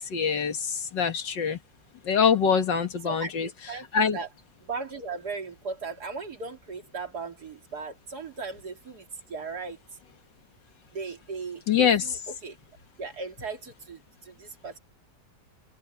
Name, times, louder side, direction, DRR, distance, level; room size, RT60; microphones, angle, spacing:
voice 1, 0.1-0.6 0.9-1.6 2.1-3.5 3.9-4.2 11.7-12.0, left 7 dB, 90° left, 2.4 m, -23 dB
voice 2, 3.0-4.3 4.6-9.8 10.9-12.6 13.0-14.8, right 4 dB, 60° right, 3.1 m, -37 dB
omnidirectional pair, 1.9 m